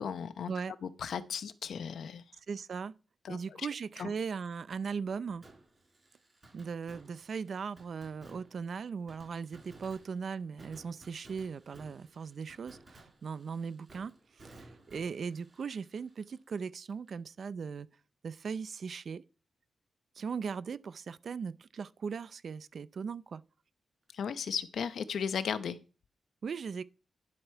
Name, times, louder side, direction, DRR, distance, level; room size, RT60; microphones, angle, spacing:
voice 1, 0.0-0.5 0.8-2.2 3.2-3.7 4.0-4.1 24.1-25.8, left 7 dB, 75° left, 0.8 m, -36 dB
voice 2, 2.5-2.9 3.3-5.4 6.5-17.9 18.2-19.2 20.2-23.4 26.4-26.8, right 5 dB, 55° right, 0.5 m, -38 dB
Fireworks, 5.4-17.1 17.4-17.5 24.1-24.2, right 2 dB, 30° right, 5.1 m, -58 dB
11.0 x 8.0 x 4.5 m
wide cardioid pair, 125°, 0 cm